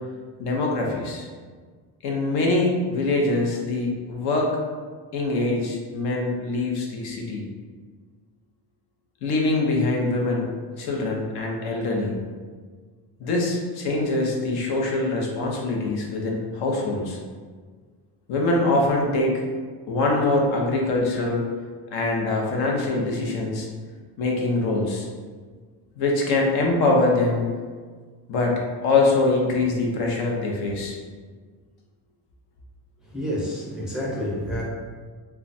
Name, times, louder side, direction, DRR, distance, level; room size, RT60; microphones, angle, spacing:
voice 1, 0.4-1.3 2.0-4.5 5.1-7.5 9.2-10.5 10.8-12.1 13.2-17.2 18.3-19.3 19.9-21.5 21.9-23.7 24.2-25.1 26.0-27.4 28.3-31.0, left 2 dB, 65° left, -1 dB, 0.8 m, -23 dB
voice 2, 33.1-34.6, equal, ahead, -6 dB, 0.4 m, -28 dB
2.3 x 2.2 x 3.9 m, 1.5 s
cardioid pair, 135°, 40 cm